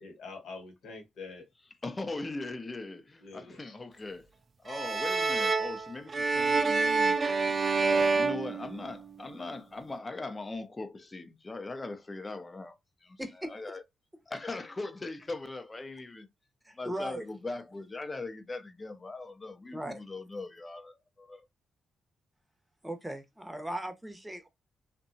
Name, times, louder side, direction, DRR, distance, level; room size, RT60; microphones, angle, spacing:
voice 1, 0.0-1.5 3.2-3.8, left 4 dB, 75° left, 1.0 m, -45 dB
voice 2, 1.8-4.3 4.6-7.2 7.8-12.8 13.0-13.2 13.5-13.8 14.3-16.3 16.8-21.5, left 3 dB, 30° left, 0.6 m, -40 dB
sound 1, 4.7-9.3, right 4 dB, 45° right, 0.3 m, -28 dB
voice 3, 13.2-13.5 16.6-17.3 19.7-20.0 22.8-24.5, right 1 dB, 10° right, 0.8 m, -38 dB
2.7 x 2.2 x 2.6 m
supercardioid pair, 60°, 0 cm